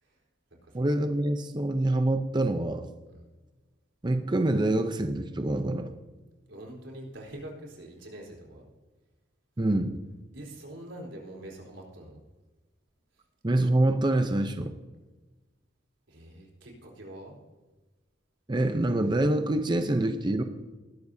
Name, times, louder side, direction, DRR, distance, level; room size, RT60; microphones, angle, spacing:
voice 1, 0.7-2.9 4.0-5.9 9.6-10.0 13.4-14.7 18.5-20.4, right 1 dB, 25° right, 7 dB, 0.6 m, -26 dB
voice 2, 6.5-8.7 10.3-12.2 16.1-17.4, right 1 dB, 85° right, -1 dB, 4.1 m, -44 dB
20.0 x 12.0 x 2.7 m, 1.2 s
head